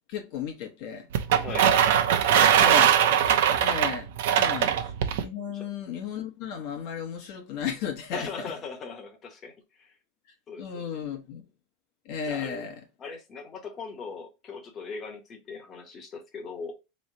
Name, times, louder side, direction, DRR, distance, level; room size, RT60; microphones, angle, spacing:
voice 1, 0.1-1.1 2.6-3.2 3.6-4.1 4.4-8.3 10.6-11.4 12.1-12.8, left 7 dB, 50° left, 0.9 m, -34 dB
sound 1, 1.1-5.2, right 9 dB, 70° right, 0.7 m, -21 dB
voice 2, 1.4-1.8 2.2-2.8 4.6-4.8 5.5-5.7 8.1-9.9 10.5-11.0 12.2-12.6 13.0-16.7, left 5 dB, 20° left, 1.0 m, -40 dB
4.2 x 3.1 x 2.7 m
supercardioid pair, 170°, 0 cm